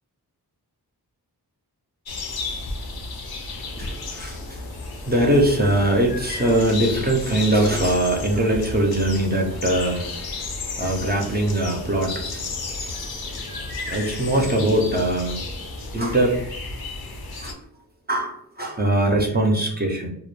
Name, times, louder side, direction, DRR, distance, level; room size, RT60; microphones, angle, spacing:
sound 1, 2.1-17.5, left 3 dB, 65° left, 0.6 m, -33 dB
voice 1, 3.6-16.4 17.4-17.6 18.1-20.1, right 1 dB, 25° right, -1 dB, 0.6 m, -22 dB
2.1 x 2.1 x 3.0 m, 0.73 s
wide cardioid pair, 50°, 40 cm